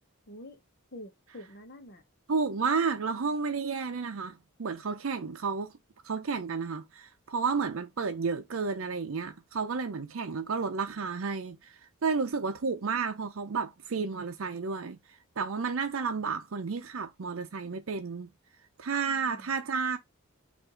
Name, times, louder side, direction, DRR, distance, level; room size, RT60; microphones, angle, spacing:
voice 1, 0.3-0.6 0.9-2.0 19.0-19.6, left 1 dB, 50° left, 1.0 m, -47 dB
voice 2, 2.3-5.7 6.0-11.7 12.0-18.3 18.8-20.0, right 5 dB, 75° right, 0.6 m, -31 dB
4.4 x 2.6 x 3.8 m
head